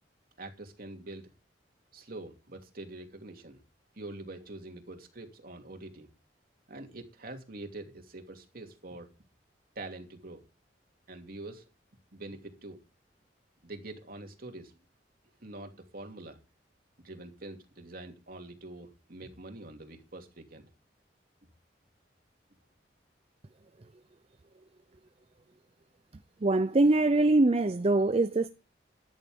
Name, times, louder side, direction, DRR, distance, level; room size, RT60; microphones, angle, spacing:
voice 1, 0.4-1.3 1.9-3.6 3.9-6.1 6.7-9.1 9.7-10.4 11.1-11.6 12.1-12.8 13.6-14.7 15.4-16.4 17.0-20.7, right 2 dB, 55° right, 2.8 m, -45 dB
voice 2, 26.4-28.5, right 2 dB, 35° right, 0.5 m, -23 dB
14.0 x 10.5 x 3.7 m
head